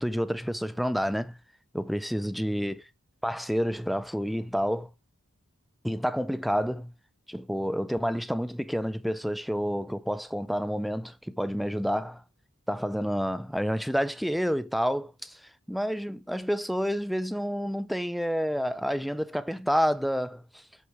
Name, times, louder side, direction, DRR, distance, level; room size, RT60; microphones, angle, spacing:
voice 1, 0.0-1.4 1.7-2.8 3.2-4.9 5.8-6.9 7.3-12.2 12.7-15.4 15.7-20.6, equal, ahead, 0.4 m, -29 dB
8.1 x 4.9 x 4.7 m
head